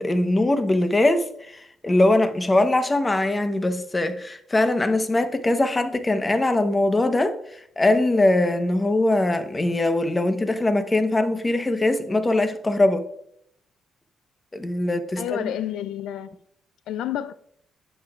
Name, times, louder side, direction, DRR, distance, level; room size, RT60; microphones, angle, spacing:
voice 1, 0.0-7.3 7.8-13.0 14.5-15.5, left 2 dB, 20° left, 0.9 m, -21 dB
voice 2, 15.2-16.4 16.9-17.3, left 11 dB, 80° left, 0.3 m, -29 dB
10.5 x 7.8 x 2.4 m
cardioid pair, 90°, 0 cm